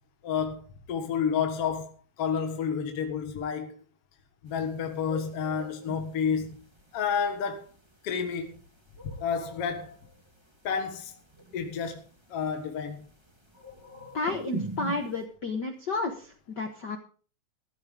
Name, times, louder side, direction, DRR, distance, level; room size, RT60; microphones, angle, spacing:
voice 1, 0.2-0.6 0.9-1.9 2.2-3.7 4.4-6.6 6.9-7.6 8.0-8.5 9.0-9.9 10.6-11.1 11.5-12.0 12.3-13.1, left 6 dB, 50° left, 2.2 m, -30 dB
sound 1, 4.5-15.2, right 1 dB, 15° right, 0.8 m, -43 dB
voice 2, 14.1-17.0, left 3 dB, 75° left, 0.9 m, -32 dB
14.5 x 14.5 x 3.7 m
omnidirectional pair, 3.9 m